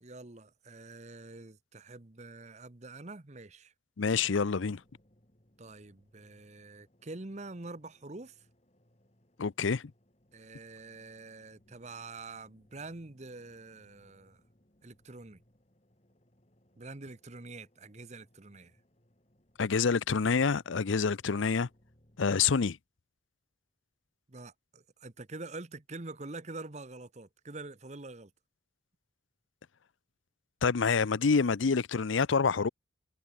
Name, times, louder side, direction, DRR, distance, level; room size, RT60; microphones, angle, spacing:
voice 1, 0.0-3.7 5.6-8.5 10.3-14.4 14.8-15.4 16.8-18.8 24.3-28.3, right 3 dB, 35° right, 1.0 m, -46 dB
voice 2, 4.0-4.8 9.4-9.9 19.6-21.7 22.2-22.8 30.6-32.7, left 5 dB, 80° left, 0.6 m, -27 dB
sound 1, 4.6-22.6, equal, 35° left, 4.0 m, -68 dB
head